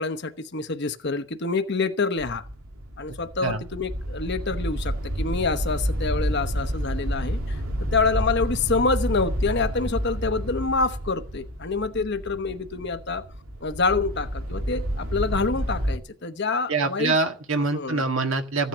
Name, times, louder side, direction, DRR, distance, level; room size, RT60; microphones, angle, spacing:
voice 1, 0.0-2.4 3.0-7.6 7.9-13.2 13.6-17.2 17.7-18.0, left 4 dB, 55° left, 1.0 m, -27 dB
sound 1, 2.2-16.0, equal, 85° right, 2.4 m, -30 dB
voice 2, 16.7-18.7, right 3 dB, 65° right, 1.7 m, -25 dB
15.0 x 9.3 x 6.8 m
head